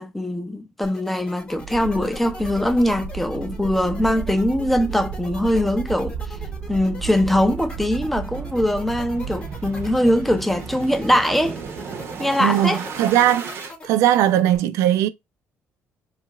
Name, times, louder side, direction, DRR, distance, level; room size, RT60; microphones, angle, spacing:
voice 1, 0.0-6.2 6.7-11.6 12.2-12.8, left 1 dB, 5° left, 0.4 m, -22 dB
sound 1, 0.8-14.6, left 2 dB, 20° left, 0.9 m, -40 dB
sound 2, 1.5-13.7, right 6 dB, 55° right, 0.7 m, -34 dB
voice 2, 12.4-13.5 13.8-15.1, right 12 dB, 85° right, 0.3 m, -19 dB
2.9 x 2.4 x 2.9 m
cardioid pair, 115°, 5 cm